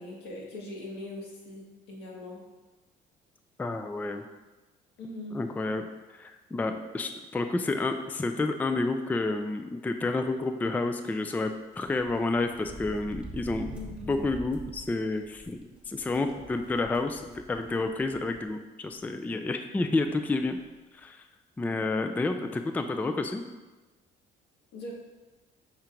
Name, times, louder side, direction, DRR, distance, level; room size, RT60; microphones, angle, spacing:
voice 1, 0.0-2.4 5.0-5.4 13.7-14.2 24.7-24.9, left 2 dB, 80° left, -2 dB, 1.6 m, -41 dB
voice 2, 3.6-4.2 5.3-5.9 6.1-13.7 14.1-20.6 20.9-21.2 21.6-23.4, left 2 dB, 10° left, 7 dB, 0.3 m, -30 dB
sound 1, 11.8-18.5 18.9-19.0 20.1-20.2 20.4-20.7, right 2 dB, 5° right, 1.0 m, -45 dB
5.7 x 3.7 x 4.5 m, 1.2 s
cardioid pair, 110°, 17 cm